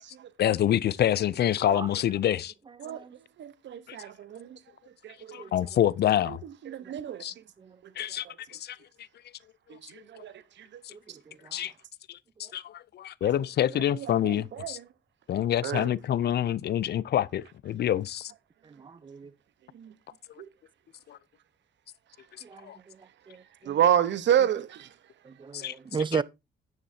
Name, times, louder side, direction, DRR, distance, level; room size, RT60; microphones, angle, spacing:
voice 1, 0.4-2.5 3.9-4.0 5.3-6.4 7.2-7.3 8.0-8.8 10.2-10.3 10.8-10.9 11.5-11.7 12.1-14.8 15.3-18.3 21.1-21.2 22.6-22.8 25.5-25.7 26.1-26.2, left 11 dB, 55° left, 0.5 m, -27 dB
voice 2, 3.4-4.6 5.0-5.4 6.3-6.4 6.7-7.3 9.7-10.3 10.7-10.8 13.2-13.3 13.9-14.7 15.6-15.9 19.7-19.9 23.7-24.9, right 10 dB, 65° right, 1.0 m, -29 dB
voice 3, 18.8-19.3 22.4-22.7 23.3-23.8 25.3-26.2, right 5 dB, 25° right, 0.6 m, -34 dB
10.0 x 9.1 x 2.7 m
cardioid pair, 90°, 20 cm